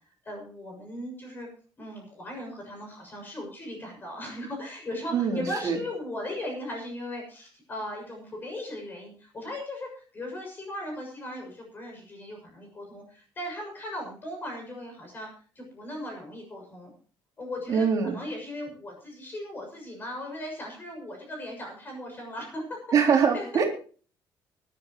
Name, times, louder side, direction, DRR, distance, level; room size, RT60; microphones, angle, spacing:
voice 1, 0.2-1.5 1.8-15.3 15.5-16.9 17.4-22.8 23.3-23.6, left 1 dB, 25° left, 2 dB, 6.7 m, -38 dB
voice 2, 5.1-5.8 17.7-18.1 22.9-23.7, right 6 dB, 45° right, 1 dB, 3.7 m, -23 dB
23.5 x 11.5 x 3.1 m, 0.41 s
cardioid pair, 170°, 8 cm